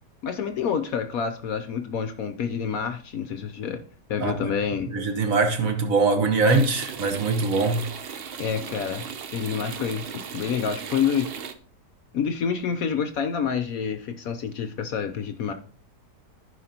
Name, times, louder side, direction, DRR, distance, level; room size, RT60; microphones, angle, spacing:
voice 1, 0.2-3.8 4.1-4.9 8.4-11.3 12.1-15.5, left 7 dB, 65° left, 1.0 m, -28 dB
voice 2, 4.9-7.8, right 3 dB, 55° right, 1.4 m, -22 dB
sound 1, 6.5-11.5, right 7 dB, 75° right, 0.5 m, -37 dB
15.5 x 5.2 x 2.8 m
omnidirectional pair, 1.9 m